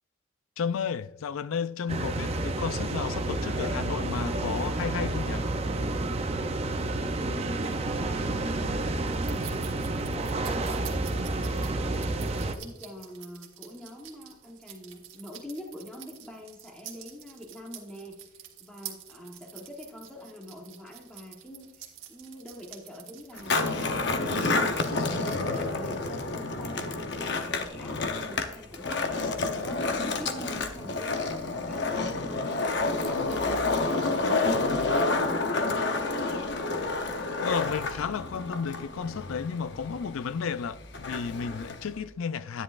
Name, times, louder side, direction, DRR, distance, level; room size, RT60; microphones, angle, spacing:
voice 1, 0.6-5.5 37.4-42.6, left 6 dB, 75° left, 0.4 m, -33 dB
sound 1, 1.9-12.6, right 2 dB, 30° right, 0.5 m, -30 dB
voice 2, 7.2-12.1 12.5-23.9 24.2-24.8 25.2-36.8, equal, 5° left, 1.1 m, -45 dB
sound 2, 7.6-26.2, right 10 dB, 70° right, 1.5 m, -49 dB
Skateboard, 23.3-42.0, left 3 dB, 55° left, 0.8 m, -29 dB
10.5 x 9.9 x 2.5 m
head